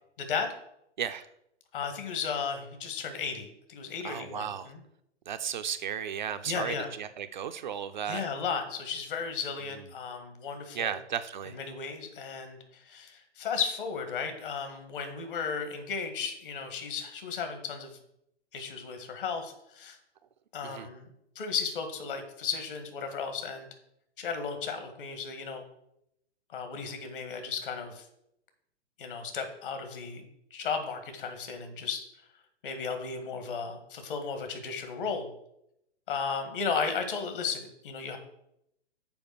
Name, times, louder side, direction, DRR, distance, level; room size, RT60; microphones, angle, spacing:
voice 1, 0.2-0.5 1.7-4.8 6.4-6.9 8.1-11.0 11.4-18.0 18.5-20.0 20.5-21.1 21.4-23.7 24.2-25.6 26.5-28.1 29.0-30.3 30.5-32.0 32.6-35.3 36.1-38.2, left 5 dB, 45° left, 6 dB, 1.8 m, -35 dB
voice 2, 4.0-4.7 5.3-8.3 10.7-11.6 20.6-20.9, right 8 dB, 40° right, 10 dB, 0.5 m, -34 dB
7.1 x 5.0 x 6.5 m, 0.79 s
figure-of-eight pair, 115°, 35 cm